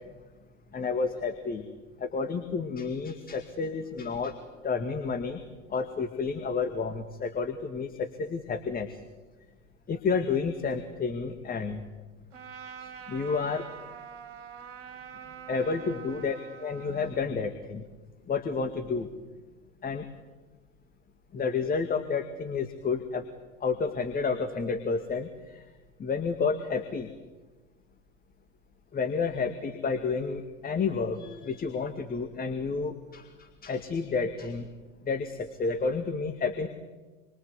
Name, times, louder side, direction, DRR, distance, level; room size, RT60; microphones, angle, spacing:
voice 1, 0.7-1.7 2.0-4.4 4.6-5.4 5.7-9.0 9.9-11.8 12.8-13.7 15.5-17.8 18.3-19.1 19.8-20.1 21.3-23.3 23.6-25.6 26.0-27.1 28.9-34.7 35.0-36.7, left 5 dB, 20° left, 8 dB, 2.2 m, -30 dB
Trumpet, 12.3-17.2, right 7 dB, 65° right, 4.4 m, -45 dB
28.0 x 23.5 x 8.2 m, 1.3 s
figure-of-eight pair, 85°, 39 cm